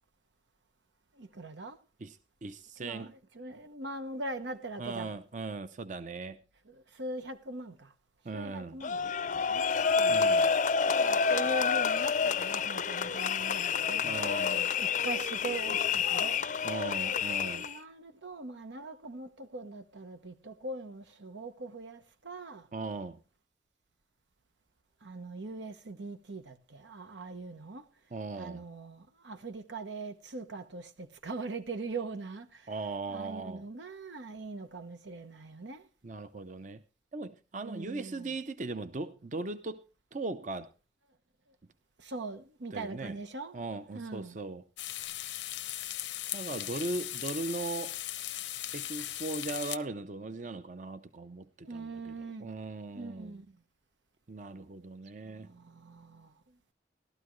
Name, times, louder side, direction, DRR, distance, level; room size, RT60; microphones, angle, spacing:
voice 1, 1.2-1.8 2.8-5.1 6.7-7.9 8.3-9.7 9.9-10.2 11.0-14.1 14.8-16.4 17.4-22.7 25.0-27.9 28.3-32.7 33.1-35.8 37.6-38.3 42.0-43.6 43.9-44.4 51.6-52.5 52.8-53.5 55.4-56.3, right 2 dB, 85° right, 1.1 m, -41 dB
voice 2, 2.0-3.1 4.8-6.4 8.2-8.8 10.1-10.5 14.0-14.7 16.6-17.6 22.7-23.2 28.1-28.6 32.7-33.7 36.0-36.8 37.1-39.8 40.1-40.7 42.7-43.2 43.5-44.6 46.3-48.0 48.7-53.4 54.3-55.5, right 3 dB, 45° right, 0.6 m, -38 dB
sound 1, 8.8-17.8, left 5 dB, 45° left, 0.5 m, -28 dB
sound 2, 44.8-49.8, left 14 dB, 90° left, 0.8 m, -38 dB
15.0 x 12.5 x 3.1 m
head